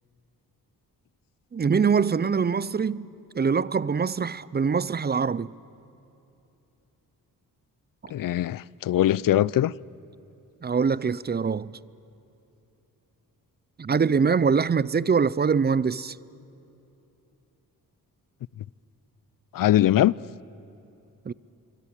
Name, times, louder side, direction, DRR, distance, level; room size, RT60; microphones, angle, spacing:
voice 1, 1.5-3.1 3.3-5.5 10.6-11.8 13.8-16.2 21.3-21.4, right 5 dB, 25° right, 0.5 m, -23 dB
voice 2, 8.1-9.7 19.5-20.2, left 13 dB, 60° left, 0.5 m, -21 dB
27.5 x 23.5 x 8.8 m
cardioid pair, 85°, 37 cm